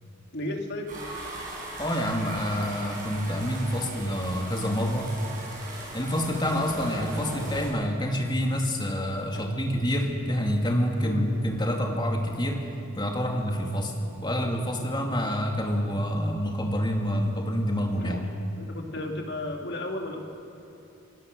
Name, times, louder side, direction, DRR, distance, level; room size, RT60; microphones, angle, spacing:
voice 1, 0.3-0.9 9.3-9.4 11.0-11.3 13.3-13.4 18.0-18.2 18.6-20.2, left 1 dB, 55° left, 2 dB, 2.5 m, -34 dB
sound 1, 0.9-7.7, right 2 dB, 40° right, 6.8 m, -39 dB
voice 2, 1.8-5.2 5.9-12.6 13.0-13.9 14.2-18.2, equal, 20° left, 1 dB, 2.3 m, -27 dB
27.0 x 17.5 x 6.5 m, 2.8 s
head